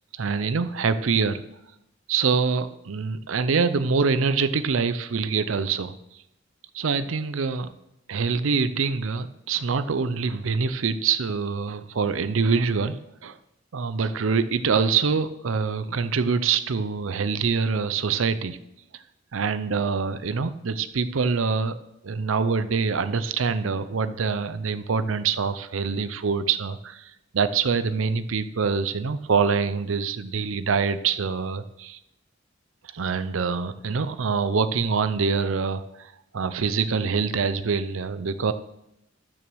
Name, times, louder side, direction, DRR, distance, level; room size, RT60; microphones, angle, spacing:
voice 1, 0.1-1.4 2.1-5.9 6.7-7.7 8.1-13.4 13.7-18.6 18.9-19.0 19.3-21.8 22.0-32.0 32.9-38.5, right 5 dB, 75° right, 12 dB, 0.6 m, -25 dB
12.5 x 6.3 x 6.2 m, 0.84 s
head